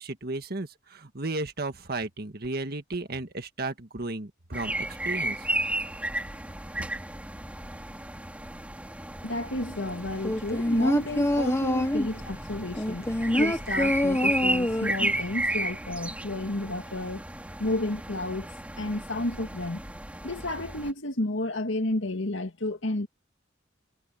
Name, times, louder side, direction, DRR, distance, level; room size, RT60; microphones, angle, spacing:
voice 1, 0.0-4.8 5.0-5.5 6.8-6.9, right 2 dB, 50° right, 1.7 m, -34 dB
sound 1, 4.5-20.9, right 1 dB, 5° right, 3.1 m, -34 dB
voice 2, 9.2-13.1 13.4-17.2 17.6-18.5 18.8-19.8 20.2-23.1, left 1 dB, 70° left, 2.0 m, -31 dB
sound 2, 10.2-12.2 12.8-15.2 15.5-15.6, left 1 dB, 15° left, 1.1 m, -25 dB
head